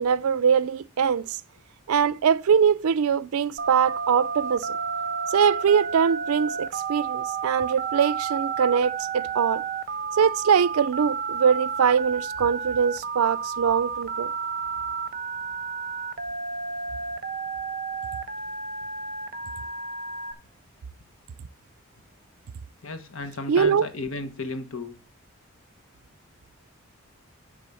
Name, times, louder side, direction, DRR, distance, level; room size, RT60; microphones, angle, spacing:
voice 1, 0.0-1.4 1.9-4.8 5.3-9.6 10.2-14.3 23.5-23.9, right 7 dB, 85° right, 0.4 m, -22 dB
Telephone, 3.6-20.3, right 5 dB, 40° right, 0.6 m, -31 dB
voice 2, 22.8-25.0, left 2 dB, 70° left, 1.1 m, -34 dB
10.0 x 3.7 x 7.0 m
head